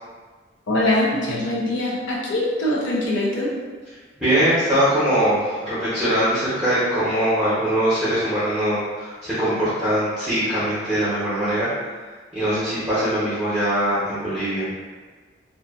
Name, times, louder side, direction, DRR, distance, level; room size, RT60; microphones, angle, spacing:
voice 1, 0.7-3.5, left 1 dB, 75° left, -4 dB, 0.6 m, -22 dB
voice 2, 4.2-11.7 12.3-14.7, right 1 dB, 5° right, -15 dB, 0.8 m, -22 dB
2.5 x 2.4 x 2.4 m, 1.4 s
head